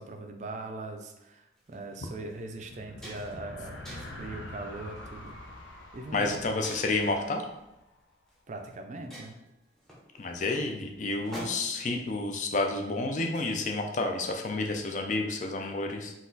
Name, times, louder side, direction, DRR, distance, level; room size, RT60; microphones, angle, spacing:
voice 1, 0.0-5.4 5.9-6.4 8.5-9.4, right 2 dB, 40° right, 4 dB, 0.4 m, -40 dB
sound 1, 1.6-1.7 2.3-2.4 2.7-3.5 3.8-4.3 5.0-5.3 6.6-7.2 8.3-8.4 8.7-8.8 9.1-11.9, right 1 dB, ahead, 0.7 m, -46 dB
sound 2, 2.3-8.0, left 1 dB, 90° left, 0.6 m, -45 dB
voice 2, 6.1-7.4 10.2-16.1, left 2 dB, 40° left, 3 dB, 0.4 m, -30 dB
4.0 x 2.4 x 3.9 m, 0.90 s
head